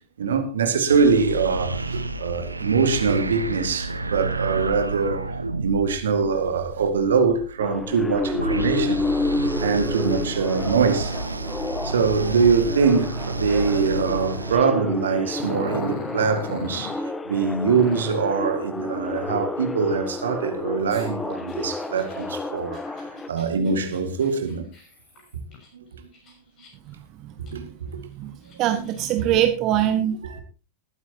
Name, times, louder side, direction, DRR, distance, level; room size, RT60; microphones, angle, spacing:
voice 1, 0.2-5.3 5.6-9.0 9.6-11.1 11.8-17.0 17.3-22.8 23.1-24.6 25.7-25.8 27.4-27.9 28.7-28.9 29.3-29.4 30.2-30.4, right 5 dB, 65° right, 1.9 m, -23 dB
sound 1, 0.9-14.6, right 2 dB, 80° right, 0.8 m, -30 dB
sound 2, 7.6-23.3, left 3 dB, 10° left, 1.0 m, -30 dB
Growling, 15.3-17.0 17.7-18.3 20.9-25.7 26.1-26.9 27.5-27.6 28.2-29.2, left 4 dB, 35° left, 6.4 m, -39 dB
voice 2, 27.2-27.7 28.2-28.3 28.6-30.2, right 11 dB, 40° right, 1.3 m, -23 dB
19.5 x 9.6 x 2.9 m
figure-of-eight pair, 90°, 0 cm